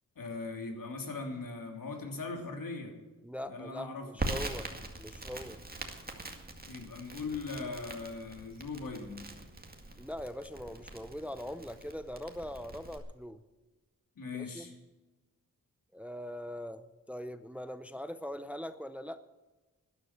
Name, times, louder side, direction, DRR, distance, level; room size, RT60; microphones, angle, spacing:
voice 1, 0.1-2.9 3.5-4.2 6.6-9.2 14.2-14.7, left 3 dB, 70° left, 2 dB, 3.1 m, -40 dB
voice 2, 3.2-4.7 5.0-5.6 10.0-13.4 14.3-14.7 15.9-19.2, equal, 5° right, 11 dB, 0.6 m, -41 dB
Crackle, 4.2-13.0, right 2 dB, 25° right, 2.1 m, -42 dB
12.5 x 10.5 x 7.5 m, 1.2 s
wide cardioid pair, 85°, 34 cm